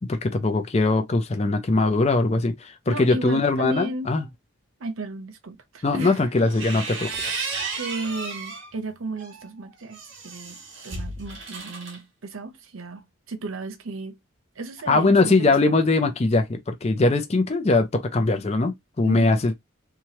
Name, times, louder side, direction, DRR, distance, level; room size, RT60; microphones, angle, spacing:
voice 1, 0.0-4.2 5.8-7.4 14.9-19.5, left 3 dB, 30° left, 0.4 m, -21 dB
voice 2, 2.9-4.1 4.8-6.2 7.7-14.2 14.6-15.7 19.0-19.4, right 2 dB, 80° right, 0.7 m, -34 dB
sound 1, 6.4-8.7 9.2-12.0, right 4 dB, 65° right, 1.3 m, -33 dB
3.1 x 2.2 x 2.8 m
head